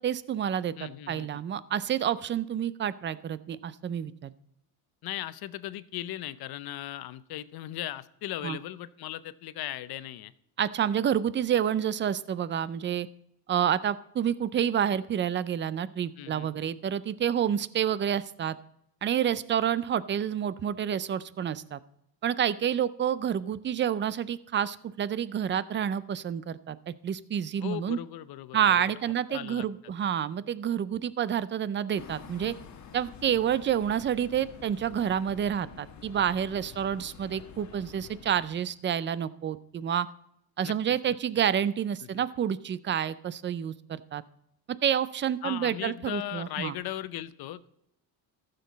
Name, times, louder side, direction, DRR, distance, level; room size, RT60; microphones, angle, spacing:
voice 1, 0.0-0.7 1.1-4.3 8.4-8.6 10.6-13.1 13.5-18.6 19.0-21.8 22.2-28.0 28.5-32.5 32.9-40.1 40.6-44.2 44.8-46.7, right 9 dB, 25° right, 17 dB, 0.4 m, -29 dB
voice 2, 0.8-1.4 5.0-10.3 16.2-16.7 27.6-29.0 29.3-29.6 40.6-40.8 42.0-42.2 45.4-47.7, left 13 dB, 55° left, 15 dB, 0.7 m, -38 dB
sound 1, 32.0-38.7, left 7 dB, 40° left, 1.3 m, -48 dB
14.5 x 6.8 x 4.0 m, 0.77 s
cardioid pair, 125°, 45 cm